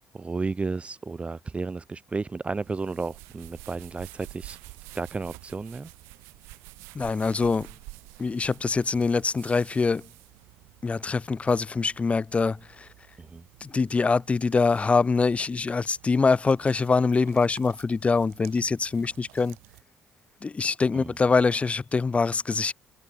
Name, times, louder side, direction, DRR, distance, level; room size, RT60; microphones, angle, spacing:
voice 1, 0.1-5.9 13.2-13.4 20.9-21.1, right 4 dB, 25° right, 2.0 m, -33 dB
sound 1, 2.6-19.8, right 25 dB, 65° right, 2.6 m, -50 dB
voice 2, 6.9-7.7 8.2-10.1 10.8-12.9 13.6-19.6 20.4-22.7, left 4 dB, 25° left, 0.9 m, -24 dB
figure-of-eight pair, 45°, 5 cm